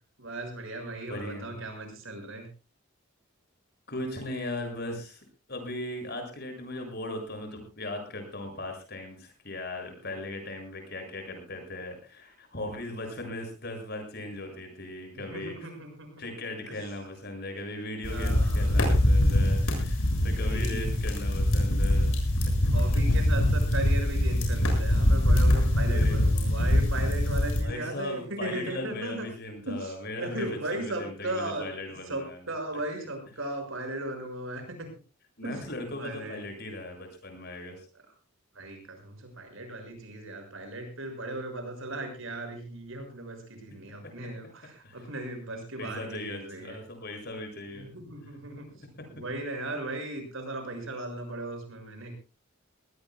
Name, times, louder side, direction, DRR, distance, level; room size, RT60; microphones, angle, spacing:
voice 1, 0.2-2.5 15.1-16.2 16.7-16.9 18.1-18.8 20.0-21.0 22.6-29.3 29.6-31.7 32.1-34.9 35.4-35.6 36.0-36.4 37.9-38.0 38.5-46.8 47.7-48.7 49.2-52.1, right 2 dB, 65° right, 5 dB, 6.4 m, -37 dB
voice 2, 1.1-1.6 3.9-15.7 16.2-22.1 22.4-22.5 25.9-26.2 27.6-32.4 35.4-37.9 44.8-45.0 45.8-47.9 49.0-49.2, left 1 dB, 45° left, 4 dB, 7.0 m, -38 dB
sound 1, 18.0-27.6, left 1 dB, 85° left, 7.1 m, -23 dB
22.5 x 19.0 x 2.3 m, 0.32 s
head